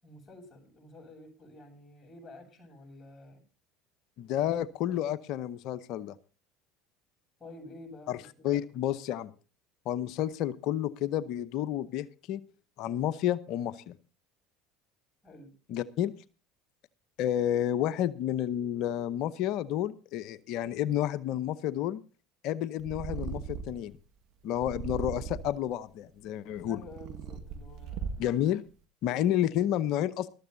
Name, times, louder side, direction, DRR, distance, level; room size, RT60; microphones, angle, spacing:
voice 1, 0.0-3.4 7.4-8.6 15.2-15.5 26.7-28.2 29.1-29.3, left 1 dB, 30° left, -5 dB, 7.4 m, -50 dB
voice 2, 4.2-6.2 8.1-8.2 8.4-9.3 9.9-12.4 12.8-14.0 15.7-16.1 17.2-22.0 22.4-24.0 24.4-26.8 28.2-28.6 29.0-30.3, left 11 dB, 60° left, 17 dB, 0.8 m, -30 dB
Purr, 22.8-23.9 24.6-25.6 26.4-28.5, right 6 dB, 60° right, 1.5 m, -38 dB
21.0 x 13.5 x 2.7 m, 0.35 s
hypercardioid pair, 70°, 0 cm